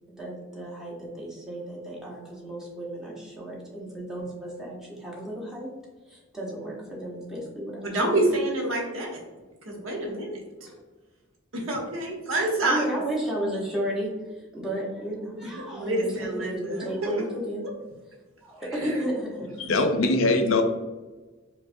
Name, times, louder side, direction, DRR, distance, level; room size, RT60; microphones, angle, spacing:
voice 1, 0.1-5.7 6.0-8.3 8.8-8.9 10.6-10.8 12.6-17.6 18.4-19.5, right 1 dB, 5° right, -6 dB, 0.9 m, -33 dB
voice 2, 7.8-9.2 9.7-10.4 11.5-12.8 15.7-17.1 19.6-19.8, right 2 dB, 90° right, 0 dB, 0.9 m, -27 dB
voice 3, 19.6-20.6, left 2 dB, 85° left, 5 dB, 0.5 m, -22 dB
4.7 x 2.1 x 2.6 m, 1.2 s
head